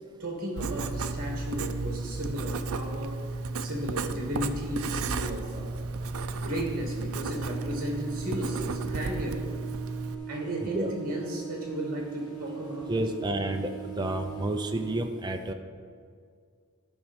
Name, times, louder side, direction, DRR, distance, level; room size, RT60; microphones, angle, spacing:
voice 1, 0.2-3.2 3.6-5.8 6.3-9.4 10.3-13.0, equal, 40° right, 0 dB, 2.1 m, -34 dB
Writing, 0.6-10.1, right 3 dB, 70° right, 0.5 m, -33 dB
sound 1, 7.2-15.0, right 11 dB, 65° left, 0.9 m, -41 dB
voice 2, 10.6-10.9 12.9-15.5, right 1 dB, 20° right, 4 dB, 0.5 m, -30 dB
14.0 x 5.9 x 4.3 m, 2.1 s
head